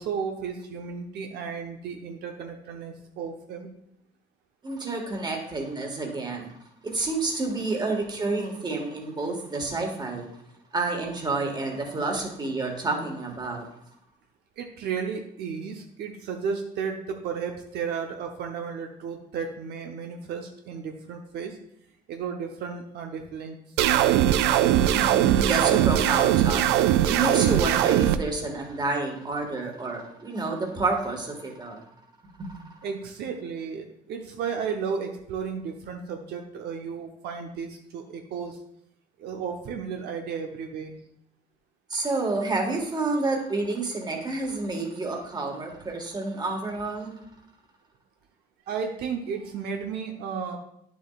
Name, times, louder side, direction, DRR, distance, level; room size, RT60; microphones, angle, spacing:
voice 1, 0.0-3.7 14.6-21.6 22.1-23.6 32.8-38.6 39.2-40.9 48.7-50.6, right 6 dB, 75° right, 3 dB, 0.8 m, -33 dB
voice 2, 4.6-6.5 6.8-10.3 10.7-13.6 24.9-26.6 27.0-31.8 32.4-32.6 41.9-47.1, right 3 dB, 25° right, 2 dB, 1.7 m, -29 dB
sound 1, 23.8-28.2, right 12 dB, 90° right, 0.4 m, -20 dB
9.6 x 7.1 x 2.4 m, 0.74 s
cardioid pair, 110°, 17 cm